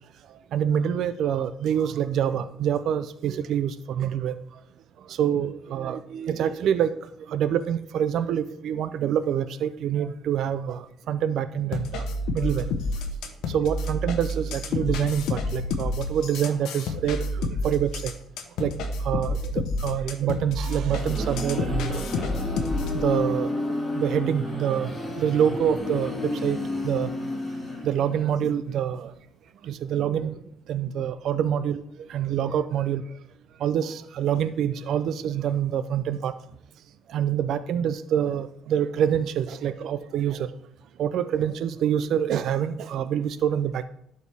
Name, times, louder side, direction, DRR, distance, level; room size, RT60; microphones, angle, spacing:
voice 1, 0.5-4.4 5.2-6.9 7.3-12.0 12.3-12.7 13.5-18.1 18.6-18.7 19.0-19.4 19.8-22.0 23.0-23.5 24.0-24.9 25.2-26.1 26.4-26.6 26.8-27.1 27.8-29.1 29.7-30.3 30.7-31.8 32.1-33.0 33.6-36.3 37.1-40.5 41.0-43.8, right 9 dB, 65° right, 12 dB, 0.4 m, -26 dB
sound 1, 11.7-23.0, left 2 dB, 80° left, 0.9 m, -29 dB
sound 2, 20.6-28.3, left 2 dB, 10° left, 2.3 m, -31 dB
11.5 x 4.4 x 3.4 m, 0.70 s
cardioid pair, 125°, 0 cm